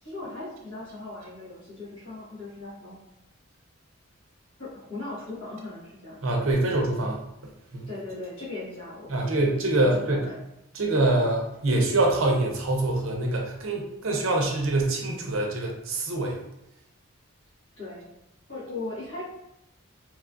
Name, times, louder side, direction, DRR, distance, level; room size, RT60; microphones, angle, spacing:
voice 1, 0.0-3.0 4.6-6.2 7.9-9.5 9.8-10.4 17.8-18.1 18.5-19.2, left 2 dB, 65° left, -7 dB, 1.3 m, -38 dB
voice 2, 6.2-7.2 7.7-7.9 9.1-10.2 10.7-16.4, right 2 dB, 70° right, 0 dB, 0.6 m, -25 dB
3.0 x 2.4 x 2.4 m, 0.84 s
head